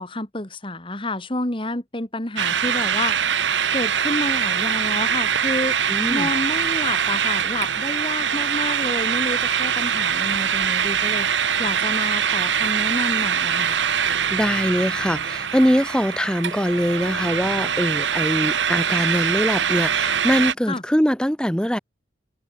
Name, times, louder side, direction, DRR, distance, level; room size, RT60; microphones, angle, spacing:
voice 1, 0.0-5.8 6.1-13.8 20.7-20.8, left 2 dB, 30° left, 2.2 m, -29 dB
sound 1, 2.4-20.5, right 7 dB, 85° right, 1.5 m, -23 dB
voice 2, 5.9-6.3 14.3-21.8, equal, 5° left, 2.0 m, -22 dB
head